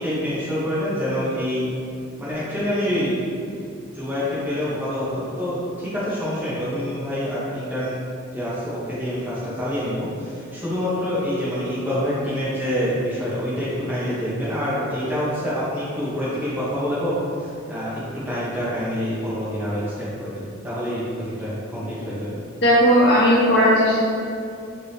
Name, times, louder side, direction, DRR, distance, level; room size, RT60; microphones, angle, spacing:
voice 1, 0.0-1.7 2.2-3.2 3.9-8.0 8.3-17.1 17.4-22.4, equal, 10° right, -10 dB, 0.9 m, -26 dB
voice 2, 22.6-24.0, equal, 55° left, -8 dB, 1.1 m, -16 dB
4.6 x 3.3 x 2.8 m, 2.5 s
head